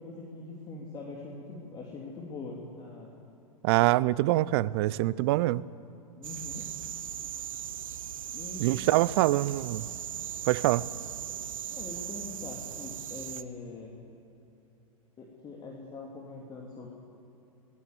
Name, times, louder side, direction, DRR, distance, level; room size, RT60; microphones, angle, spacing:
voice 1, 0.0-3.1 4.1-4.2 6.2-6.7 8.3-9.0 11.7-14.0 15.2-16.9, left 3 dB, 25° left, 3.0 m, -43 dB
voice 2, 3.6-5.6 8.6-9.9 10.5-10.9, right 17 dB, 45° right, 0.6 m, -25 dB
sound 1, 6.2-13.4, right 10 dB, 65° right, 1.0 m, -38 dB
25.5 x 20.0 x 8.0 m
figure-of-eight pair, 100°, 19 cm